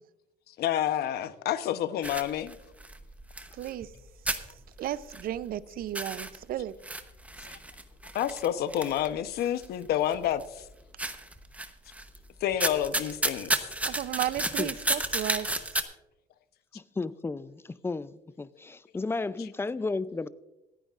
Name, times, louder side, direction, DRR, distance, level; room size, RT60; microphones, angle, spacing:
voice 1, 0.6-2.6 7.4-7.6 8.1-10.7 12.4-13.5, left 11 dB, 70° left, 0.8 m, -29 dB
sound 1, 2.0-4.0 4.3-5.6 5.8-9.7 10.1-10.6 11.0-12.2 12.5-15.8, right 1 dB, 10° right, 0.9 m, -32 dB
voice 2, 3.6-3.9 4.8-6.8 13.8-15.8, right 12 dB, 60° right, 0.6 m, -34 dB
voice 3, 16.7-20.3, left 3 dB, 15° left, 0.4 m, -33 dB
26.0 x 9.2 x 2.5 m
cardioid pair, 110°, 17 cm